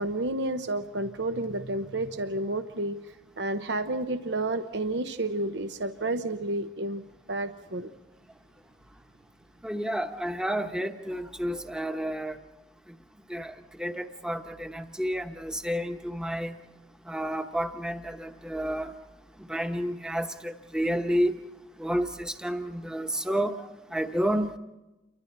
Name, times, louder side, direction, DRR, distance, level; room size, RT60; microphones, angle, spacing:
voice 1, 0.0-3.0 3.4-7.0 7.3-7.9, right 2 dB, 70° right, 9 dB, 0.8 m, -30 dB
voice 2, 9.6-12.4 13.3-16.6 17.1-18.9 19.5-21.3 21.8-24.6, equal, 5° right, 6 dB, 1.0 m, -30 dB
29.5 x 24.0 x 4.4 m, 1.0 s
head